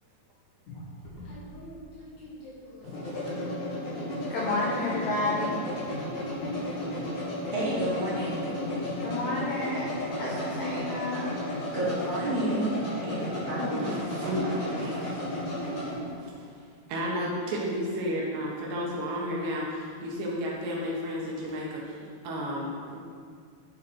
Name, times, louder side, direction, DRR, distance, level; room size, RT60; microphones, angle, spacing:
sound 1, 0.7-16.0, left 1 dB, 45° left, 3.3 m, -34 dB
voice 1, 2.8-3.3 13.8-16.5 16.9-23.0, equal, 70° right, -3 dB, 3.2 m, -33 dB
voice 2, 4.3-5.5 9.0-9.9 10.2-11.4, left 2 dB, 75° left, -4 dB, 2.0 m, -30 dB
voice 3, 7.5-8.9 11.7-12.7 13.0-13.9, right 1 dB, 30° right, -9 dB, 1.3 m, -30 dB
11.0 x 7.3 x 4.4 m, 2.2 s
omnidirectional pair, 5.5 m